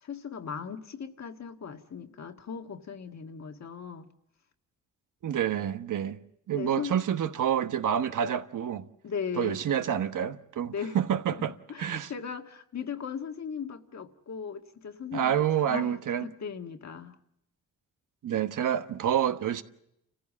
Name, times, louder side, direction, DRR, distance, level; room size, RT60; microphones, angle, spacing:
voice 1, 0.0-4.1 6.5-7.0 9.0-9.6 10.7-11.0 11.4-15.3 15.6-17.2, left 6 dB, 55° left, 1.8 m, -38 dB
voice 2, 5.2-6.2 6.5-8.8 9.4-12.1 15.1-16.3 18.2-19.6, right 9 dB, 75° right, 1.2 m, -28 dB
29.0 x 15.0 x 7.4 m
cardioid pair, 80°, 31 cm